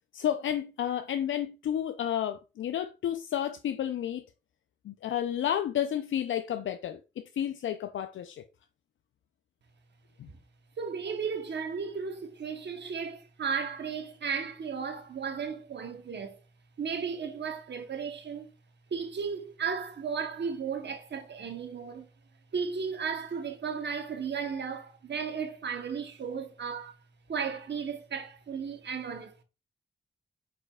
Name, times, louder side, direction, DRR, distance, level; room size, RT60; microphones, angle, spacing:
voice 1, 0.1-4.2 4.8-7.0 7.3-8.4 10.2-10.3, left 10 dB, 75° left, 0.4 m, -31 dB
voice 2, 10.8-16.4 16.8-18.5 18.9-22.1 22.5-26.9 27.3-29.4, right 6 dB, 60° right, 0.9 m, -35 dB
4.9 x 4.5 x 2.3 m
supercardioid pair, 40°, 20 cm